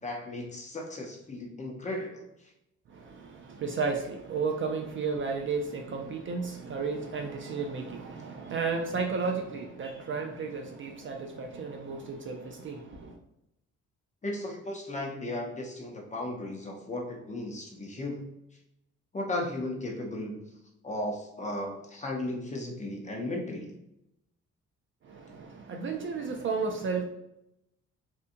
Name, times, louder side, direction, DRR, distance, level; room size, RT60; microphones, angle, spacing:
voice 1, 0.0-2.5 14.2-18.2 19.1-20.5 20.8-23.7, left 1 dB, 25° left, 1 dB, 0.6 m, -35 dB
voice 2, 2.9-13.2 25.0-27.0, right 4 dB, 40° right, 3 dB, 0.4 m, -33 dB
2.8 x 2.3 x 2.5 m, 0.82 s
cardioid pair, 90°, 30 cm